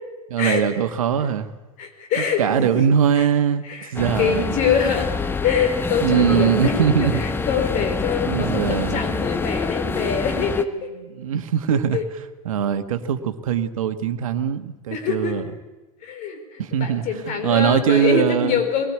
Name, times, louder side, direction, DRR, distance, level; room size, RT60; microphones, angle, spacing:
voice 1, 0.3-1.5 2.2-4.6 6.0-7.2 8.2-9.0 10.4-10.5 11.1-12.0 12.4-15.5 16.6-18.6, right 8 dB, 65° right, 9 dB, 1.5 m, -21 dB
voice 2, 1.8-2.8 3.2-3.3 3.6-3.9 4.2-5.1 5.4-10.9 11.7-12.0 14.9-15.4 16.0-18.9, left 7 dB, 40° left, 6 dB, 4.5 m, -24 dB
sound 1, 4.0-10.7, left 4 dB, 10° left, 1.0 m, -26 dB
21.0 x 19.0 x 8.4 m, 1.1 s
figure-of-eight pair, 90°, 19 cm